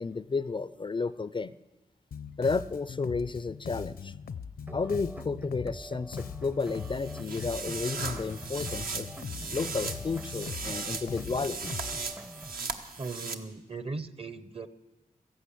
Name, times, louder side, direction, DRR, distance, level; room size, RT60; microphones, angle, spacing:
voice 1, 0.0-1.5 2.4-4.1 4.7-9.1 9.5-11.7, left 4 dB, 35° left, 16 dB, 0.4 m, -32 dB
Bass guitar, 2.1-12.0, left 6 dB, 80° left, 0.7 m, -41 dB
sound 1, 4.7-12.7, right 1 dB, 10° right, 0.6 m, -45 dB
sound 2, 6.6-13.3, right 4 dB, 75° right, 1.1 m, -38 dB
voice 2, 13.0-14.7, right 4 dB, 40° right, 14 dB, 0.8 m, -38 dB
14.5 x 11.0 x 8.3 m, 1.1 s
wide cardioid pair, 75°, 15 cm